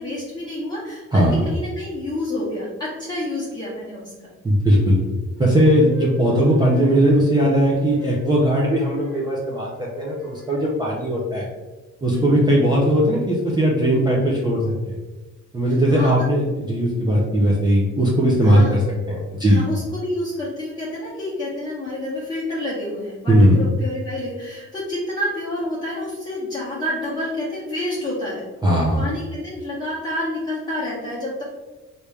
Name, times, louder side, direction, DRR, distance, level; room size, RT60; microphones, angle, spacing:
voice 1, 0.0-4.3 12.1-12.4 15.7-16.2 18.4-18.8 19.4-28.4 29.0-31.4, left 1 dB, 15° left, -9 dB, 1.0 m, -29 dB
voice 2, 1.1-1.4 4.4-5.0 5.4-11.5 12.0-14.9 15.5-18.8 19.1-19.6 23.3-23.6 28.6-29.0, equal, 15° right, -5 dB, 0.7 m, -18 dB
sound 1, 5.3-9.2 10.0-10.6, left 3 dB, 45° left, 1.2 m, -39 dB
3.3 x 2.7 x 3.2 m, 1.2 s
cardioid pair, 90°, 30 cm